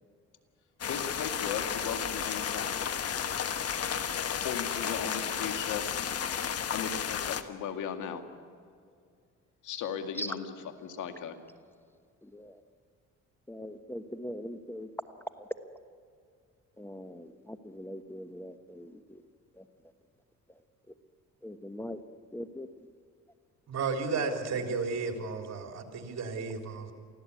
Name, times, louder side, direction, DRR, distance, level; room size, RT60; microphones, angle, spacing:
sound 1, 0.8-7.4, left 8 dB, 50° left, 1.3 m, -33 dB
voice 1, 0.9-2.7 4.4-5.9 6.7-8.2 9.6-11.4, left 7 dB, 80° left, 7 dB, 2.2 m, -37 dB
voice 2, 13.5-14.9 16.8-18.9 21.4-22.0 22.3-22.7, equal, 5° left, 9 dB, 1.2 m, -41 dB
voice 3, 23.7-26.9, right 4 dB, 60° right, 4 dB, 3.6 m, -33 dB
24.5 x 15.5 x 8.4 m, 2.2 s
cardioid pair, 90°, 30 cm